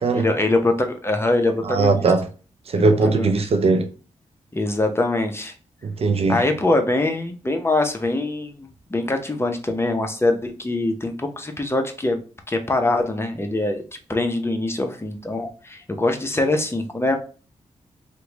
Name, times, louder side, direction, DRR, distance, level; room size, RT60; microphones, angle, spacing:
voice 1, 0.1-2.1 2.9-3.5 4.5-5.5 6.3-12.2 12.5-13.8 14.1-17.2, left 2 dB, 20° left, 0.7 m, -23 dB
voice 2, 1.7-2.2 2.7-3.9 5.8-6.4, right 3 dB, 55° right, 0.5 m, -19 dB
2.9 x 2.2 x 3.8 m
cardioid pair, 50°, 12 cm